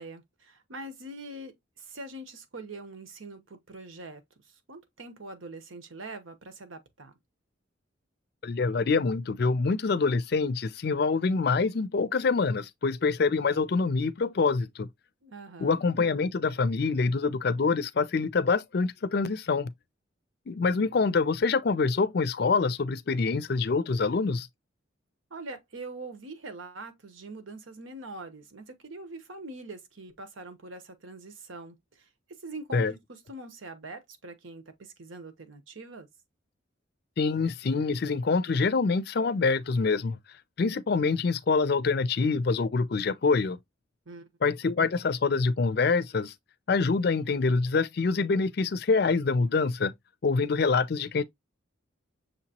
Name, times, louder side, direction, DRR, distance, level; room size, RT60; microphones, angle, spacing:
voice 1, 0.0-4.2 4.7-7.1 15.2-15.8 25.3-32.1 32.4-36.1 44.1-44.2, right 2 dB, 85° right, 1.0 m, -43 dB
voice 2, 8.4-14.9 15.6-19.7 20.5-24.5 32.7-32.9 37.2-40.2 40.6-43.6 44.4-46.3 46.7-49.9 50.2-51.2, left 4 dB, 55° left, 0.4 m, -25 dB
6.5 x 2.9 x 2.9 m
head